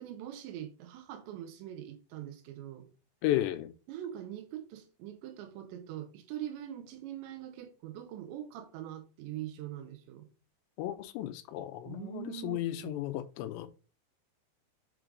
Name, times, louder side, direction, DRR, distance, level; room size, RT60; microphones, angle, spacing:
voice 1, 0.0-2.9 3.9-10.3 11.8-13.0, right 11 dB, 90° right, 3.2 m, -43 dB
voice 2, 3.2-3.7 10.8-13.7, left 13 dB, 85° left, 3.0 m, -34 dB
7.2 x 4.7 x 3.9 m
omnidirectional pair, 5.1 m